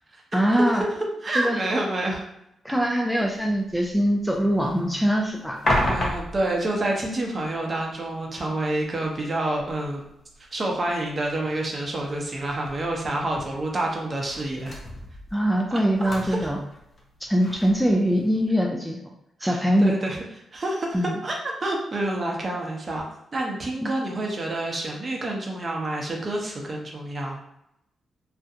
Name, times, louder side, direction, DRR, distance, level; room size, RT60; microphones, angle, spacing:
voice 1, 0.3-0.8 1.4-1.6 2.6-5.6 15.3-16.6 17.3-19.1 19.4-20.0 20.9-21.2 23.8-23.9, equal, ahead, 0 dB, 0.3 m, -22 dB
voice 2, 1.2-2.2 5.8-10.0 10.5-14.8 15.7-16.5 19.4-20.2 20.5-23.0 23.3-27.4, right 1 dB, 40° right, 0 dB, 0.7 m, -28 dB
sound 1, 3.2-18.5, left 1 dB, 50° left, 0.7 m, -35 dB
2.4 x 2.1 x 2.7 m, 0.83 s
cardioid pair, 65°, 0 cm